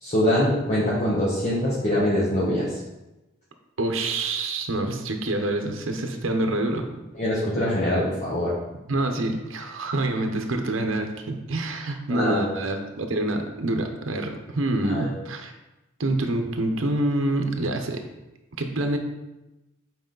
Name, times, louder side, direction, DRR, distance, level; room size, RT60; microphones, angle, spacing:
voice 1, 0.0-2.7 7.1-8.5 12.1-12.5 14.9-15.1, left 1 dB, 35° left, -8 dB, 1.4 m, -23 dB
voice 2, 3.8-6.9 8.9-15.5 16.0-18.0 18.6-19.0, right 2 dB, 80° right, 5 dB, 0.9 m, -26 dB
7.8 x 4.8 x 3.9 m, 0.99 s
head